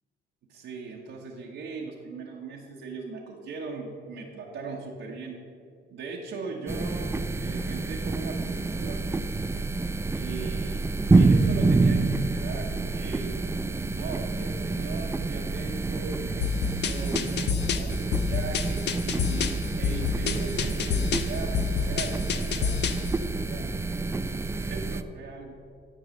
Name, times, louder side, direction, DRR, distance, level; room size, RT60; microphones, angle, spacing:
voice 1, 0.5-5.4 5.9-9.2 10.1-13.4 13.9-18.9 19.2-25.5, right 4 dB, 75° right, -2 dB, 1.1 m, -39 dB
sound 1, 6.7-25.0, right 3 dB, 15° right, 0.4 m, -27 dB
sound 2, 16.4-23.1, left 7 dB, 60° left, 0.6 m, -28 dB
11.0 x 4.7 x 6.4 m, 2.3 s
cardioid pair, 90°, 20 cm